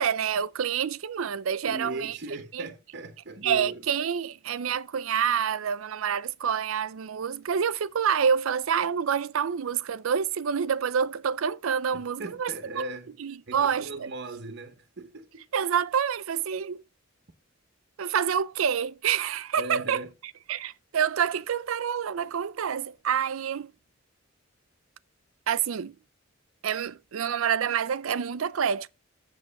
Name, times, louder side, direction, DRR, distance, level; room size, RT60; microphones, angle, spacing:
voice 1, 0.0-2.2 2.5-2.7 3.4-12.5 12.8-12.9 13.2-14.1 15.5-16.8 18.0-20.0 20.5-23.7 25.5-25.9 26.6-28.9, right 7 dB, 80° right, 0.5 m, -27 dB
voice 2, 1.6-3.9 11.9-13.1 13.5-15.5 19.6-20.1, right 2 dB, 55° right, 1.0 m, -38 dB
7.6 x 7.4 x 5.7 m
head